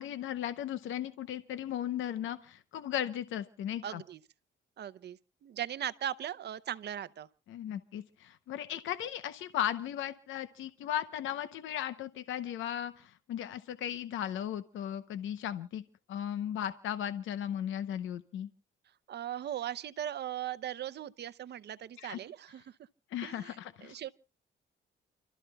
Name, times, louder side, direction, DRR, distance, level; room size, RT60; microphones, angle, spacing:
voice 1, 0.0-4.0 7.5-15.8 16.1-18.5 22.0-22.2 23.1-24.0, left 10 dB, 80° left, 0.8 m, -36 dB
voice 2, 3.8-4.2 4.8-7.3 19.1-22.6 23.2-24.1, right 11 dB, 55° right, 0.7 m, -39 dB
29.5 x 13.0 x 2.3 m
cardioid pair, 90°, 20 cm